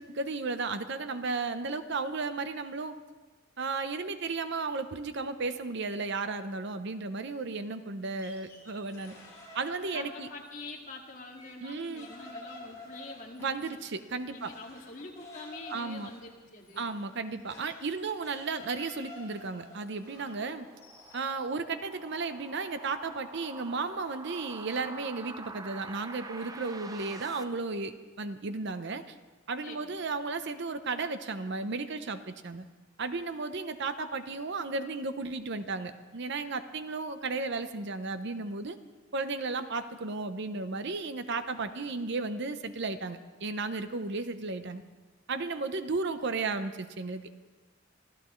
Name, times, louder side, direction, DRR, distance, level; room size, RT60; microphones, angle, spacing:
voice 1, 0.0-3.0 3.6-9.1 9.5-10.3 11.6-12.1 13.4-14.5 15.7-16.1 16.8-20.7 21.1-29.1 29.5-32.6 33.0-38.8 39.1-44.8 45.3-47.3, right 3 dB, 55° right, 10 dB, 0.7 m, -34 dB
sound 1, 8.0-10.8 11.1-21.4, left 2 dB, 15° left, 6.3 m, -50 dB
voice 2, 9.9-13.8 14.3-16.9 29.6-30.0, left 3 dB, 40° left, 0 dB, 2.0 m, -45 dB
sound 2, 19.0-27.4, right 3 dB, 20° right, 0.5 m, -47 dB
25.0 x 14.5 x 3.2 m, 1.3 s
head